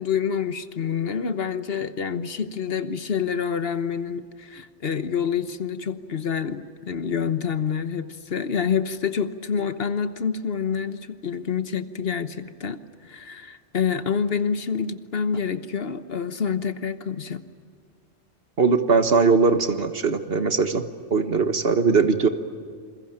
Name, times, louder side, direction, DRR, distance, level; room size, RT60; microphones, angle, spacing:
voice 1, 0.0-17.4, left 7 dB, 60° left, 11 dB, 1.3 m, -27 dB
voice 2, 18.6-20.8 21.1-22.3, right 4 dB, 55° right, 9 dB, 1.6 m, -20 dB
28.0 x 22.0 x 8.9 m, 2.1 s
omnidirectional pair, 1.2 m